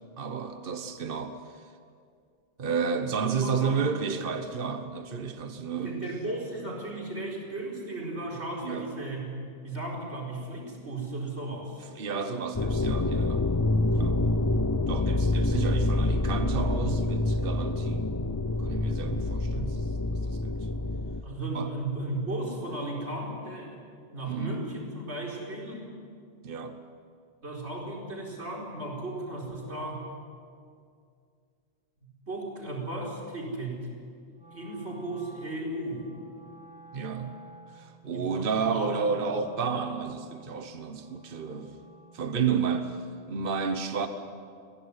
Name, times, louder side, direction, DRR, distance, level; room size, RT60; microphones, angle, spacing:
voice 1, 0.2-1.7 2.6-6.0 8.6-8.9 11.9-13.5 14.0-14.2 14.9-18.0 18.6-20.6 21.5-21.7 24.3-24.6 26.4-26.8 36.9-37.4 37.7-41.7 42.1-44.1, right 6 dB, 55° right, 8 dB, 1.3 m, -31 dB
voice 2, 3.2-3.8 5.7-9.3 9.6-11.8 21.2-23.8 24.1-25.9 27.4-30.0 32.3-33.9 34.5-36.1 38.1-39.1, right 2 dB, 80° right, -3 dB, 5.0 m, -35 dB
sound 1, 12.5-21.2, left 2 dB, 25° left, 0.5 m, -27 dB
Wind instrument woodwind instrument, 34.3-42.4, right 4 dB, 5° right, 2.8 m, -52 dB
22.5 x 15.5 x 9.7 m, 2.2 s
omnidirectional pair, 1.1 m